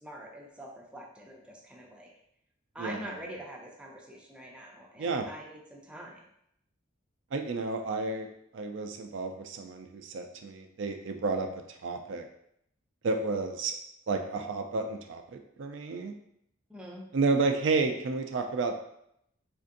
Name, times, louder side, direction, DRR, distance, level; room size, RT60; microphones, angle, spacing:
voice 1, 0.0-2.1 2.7-6.2 16.7-17.0, right 1 dB, 5° right, -2 dB, 0.4 m, -44 dB
voice 2, 2.8-3.1 5.0-5.3 7.3-11.5 11.8-12.3 13.0-13.7 14.1-16.1 17.1-18.8, right 3 dB, 65° right, 5 dB, 0.4 m, -31 dB
4.3 x 2.6 x 2.5 m, 0.75 s
head